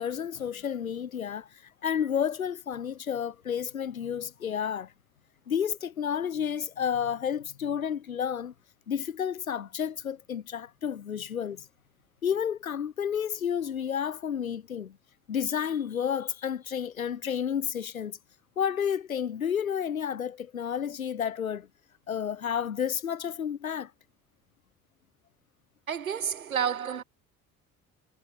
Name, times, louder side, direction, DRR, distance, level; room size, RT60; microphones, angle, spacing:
voice 1, 0.0-1.5 1.8-4.9 5.5-8.5 8.9-11.7 12.2-15.0 15.3-18.2 18.6-21.7 22.1-23.9, left 8 dB, 80° left, 3.7 m, -31 dB
voice 2, 25.9-27.0, right 8 dB, 80° right, 7.0 m, -30 dB
figure-of-eight pair, 50°, 41 cm